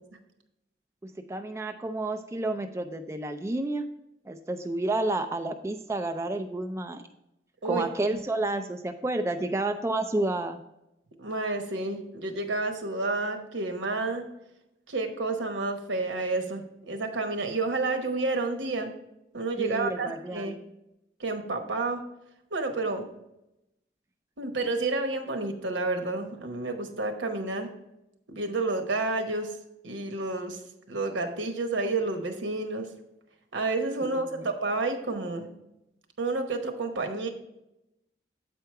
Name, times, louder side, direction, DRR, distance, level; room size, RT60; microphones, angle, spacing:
voice 1, 1.0-3.8 4.3-7.0 7.6-10.6 19.6-20.6 34.2-34.5, right 2 dB, 15° right, 6 dB, 0.3 m, -30 dB
voice 2, 11.2-14.3 14.9-18.9 19.3-20.6 21.2-22.0 22.5-23.1 24.4-27.7 28.3-29.6 29.8-30.6 30.9-32.9 33.5-35.5 36.2-37.3, right 3 dB, 85° right, 5 dB, 1.0 m, -30 dB
7.7 x 4.6 x 4.6 m, 0.87 s
head